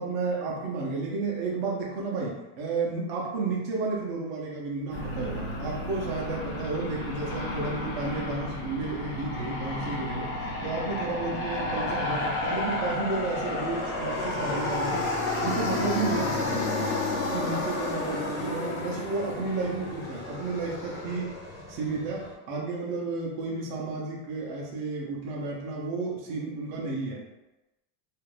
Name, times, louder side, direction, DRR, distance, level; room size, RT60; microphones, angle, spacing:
voice 1, 0.0-10.4 10.6-15.1 15.4-16.9 17.3-21.4 21.7-27.2, right 3 dB, 35° right, -3 dB, 0.5 m, -32 dB
Aircraft, 4.9-22.3, left 2 dB, 45° left, 0.4 m, -32 dB
2.4 x 2.0 x 3.1 m, 0.98 s
supercardioid pair, 180°, 43 cm